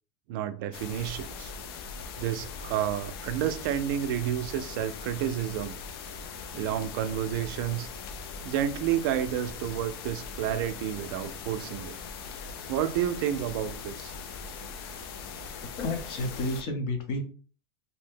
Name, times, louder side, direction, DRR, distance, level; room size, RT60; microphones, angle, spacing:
voice 1, 0.3-1.5 2.2-5.7 6.5-7.9 8.4-12.0 12.7-14.1, right 11 dB, 65° right, 0.4 m, -30 dB
sound 1, 0.7-16.6, left 5 dB, 80° left, 0.5 m, -40 dB
voice 2, 15.8-17.2, left 2 dB, 40° left, 0.7 m, -31 dB
2.6 x 2.1 x 3.4 m
supercardioid pair, 160°, 12 cm